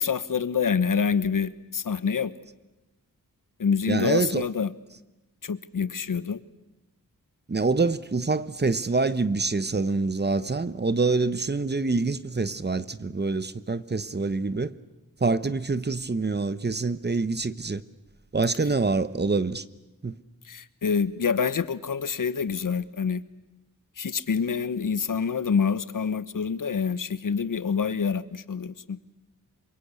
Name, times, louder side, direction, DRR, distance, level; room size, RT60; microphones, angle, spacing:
voice 1, 0.0-2.3 3.6-4.7 5.4-6.4 20.4-23.2 24.0-29.0, left 6 dB, 65° left, 1.2 m, -26 dB
voice 2, 3.9-4.5 7.5-14.7 15.2-17.8 18.3-19.6 20.0-20.2, right 3 dB, 30° right, 1.0 m, -26 dB
27.5 x 23.5 x 8.3 m
wide cardioid pair, 90°, 34 cm